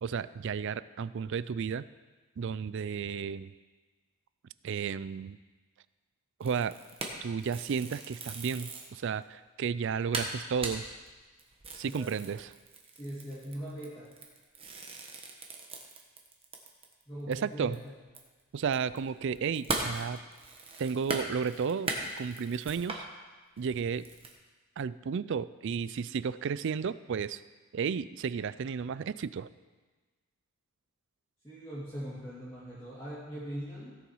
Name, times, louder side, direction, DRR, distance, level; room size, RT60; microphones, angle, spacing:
voice 1, 0.0-1.9 2.4-3.5 4.6-5.4 6.4-6.8 7.2-10.8 11.8-12.5 17.3-17.8 18.5-20.2 20.8-23.1 23.6-24.1 24.8-27.4 27.7-29.5, right 6 dB, 55° right, 17 dB, 0.3 m, -33 dB
sound 1, 6.4-9.0 9.5-9.6 9.8-9.9 10.1-17.0 17.3-17.4 17.7-23.0 23.6-24.3, right 2 dB, 25° right, 1.2 m, -39 dB
voice 2, 11.8-12.3 12.9-14.1 17.1-17.9 31.4-34.0, equal, 15° left, -11 dB, 2.6 m, -41 dB
16.5 x 7.0 x 4.7 m, 1.3 s
head